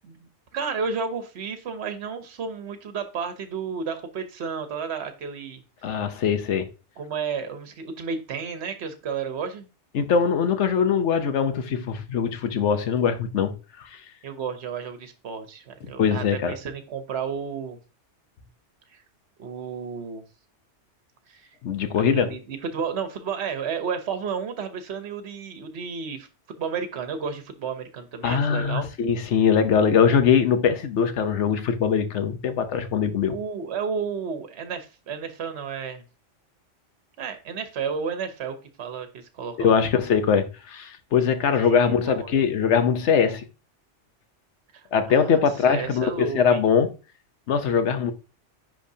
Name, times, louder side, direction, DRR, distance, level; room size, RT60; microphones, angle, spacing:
voice 1, 0.0-6.0 7.0-9.7 14.2-17.8 18.9-19.0 19.4-20.2 21.3-21.5 22.0-28.9 33.3-36.0 37.2-39.8 41.5-42.5 44.7-45.4 45.7-46.6, right 6 dB, 65° right, 1.1 m, -32 dB
voice 2, 5.8-6.7 9.9-14.0 16.0-16.6 21.6-22.3 28.2-33.4 39.6-43.5 44.9-46.9 47.5-48.1, left 7 dB, 70° left, 1.1 m, -22 dB
10.0 x 3.6 x 2.7 m
omnidirectional pair, 1.2 m